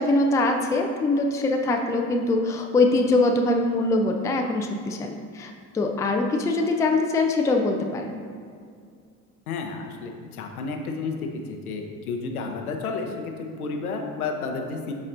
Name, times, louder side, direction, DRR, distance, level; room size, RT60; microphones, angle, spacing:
voice 1, 0.0-8.2, left 2 dB, 10° left, 3 dB, 0.4 m, -23 dB
voice 2, 9.5-14.9, left 4 dB, 75° left, 3 dB, 0.9 m, -31 dB
11.5 x 4.2 x 2.6 m, 2.2 s
figure-of-eight pair, 60°, 44 cm